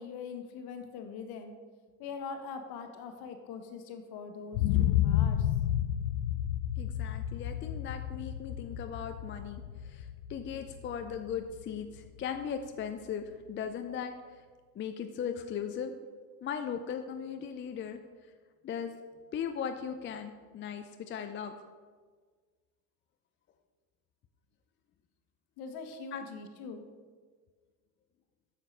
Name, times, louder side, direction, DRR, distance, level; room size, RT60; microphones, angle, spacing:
voice 1, 0.0-1.5 2.0-5.5 25.6-26.9, left 5 dB, 60° left, 6 dB, 1.4 m, -42 dB
sound 1, 4.5-12.4 12.8-12.9, left 11 dB, 85° left, 0.5 m, -31 dB
voice 2, 6.8-14.4 14.8-15.9 16.4-18.0 18.6-18.9 19.3-21.5 26.1-26.2, left 7 dB, 30° left, 7 dB, 0.5 m, -38 dB
7.3 x 6.7 x 5.2 m, 1.5 s
supercardioid pair, 90°, 42 cm